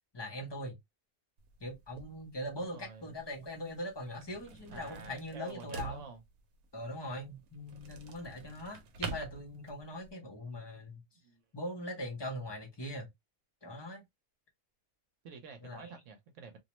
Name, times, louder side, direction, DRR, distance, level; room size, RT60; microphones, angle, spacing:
voice 1, 0.1-0.8 1.6-6.0 6.7-11.0 11.5-13.1 13.6-14.0 15.6-15.9, left 1 dB, 30° left, 0.5 m, -41 dB
sound 1, 1.4-10.1, right 5 dB, 85° right, 1.1 m, -47 dB
voice 2, 2.6-3.3 4.7-6.2 11.1-11.4 15.2-16.6, right 4 dB, 65° right, 1.0 m, -49 dB
2.7 x 2.0 x 2.9 m
omnidirectional pair, 1.5 m